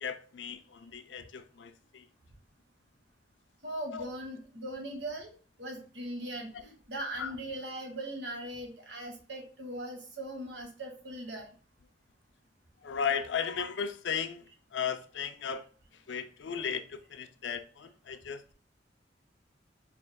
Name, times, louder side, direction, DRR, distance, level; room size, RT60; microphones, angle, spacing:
voice 1, 0.0-2.1 3.9-4.1 7.2-7.3 12.8-15.6 16.1-18.5, left 7 dB, 85° left, 0.5 m, -36 dB
voice 2, 3.6-5.3 5.6-11.5, right 1 dB, 70° right, 1.3 m, -39 dB
4.8 x 3.2 x 2.3 m
head